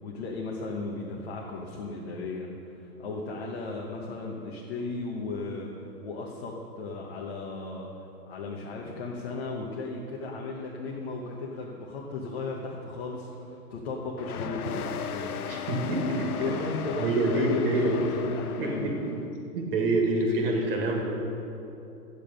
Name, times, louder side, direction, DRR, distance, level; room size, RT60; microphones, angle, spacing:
voice 1, 0.0-5.7 6.0-7.9 8.3-15.4 16.4-19.0, left 3 dB, 40° left, -2 dB, 1.2 m, -35 dB
sound 1, 14.2-19.3, left 8 dB, 60° left, 0.8 m, -36 dB
voice 2, 15.5-16.3 17.0-18.0 18.6-19.1 19.5-21.0, right 2 dB, 35° right, 0 dB, 1.8 m, -26 dB
12.5 x 9.1 x 5.2 m, 2.9 s
hypercardioid pair, 155°, 50 cm